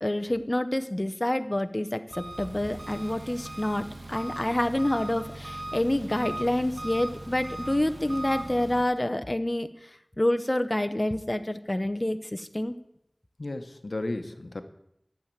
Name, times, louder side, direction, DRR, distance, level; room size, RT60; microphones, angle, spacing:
voice 1, 0.0-9.7 10.2-12.7, left 1 dB, 35° left, 9 dB, 0.9 m, -27 dB
Engine, 2.1-8.8, right 1 dB, 60° right, 1.1 m, -39 dB
voice 2, 13.4-14.6, left 2 dB, 85° left, 8 dB, 1.0 m, -34 dB
12.0 x 7.4 x 9.2 m, 0.78 s
wide cardioid pair, 45°, 0 cm